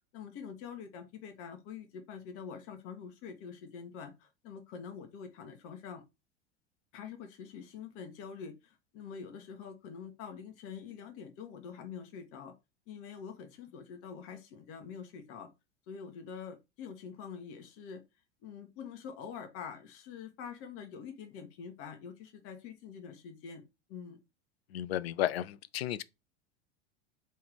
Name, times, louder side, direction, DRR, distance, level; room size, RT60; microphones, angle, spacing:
voice 1, 0.1-6.0 6.9-12.5 12.9-15.5 15.9-18.0 18.4-23.6 23.9-24.2, left 6 dB, 40° left, 1.1 m, -45 dB
voice 2, 24.7-26.0, left 13 dB, 60° left, 0.5 m, -33 dB
3.5 x 3.2 x 4.7 m
figure-of-eight pair, 80°, 35 cm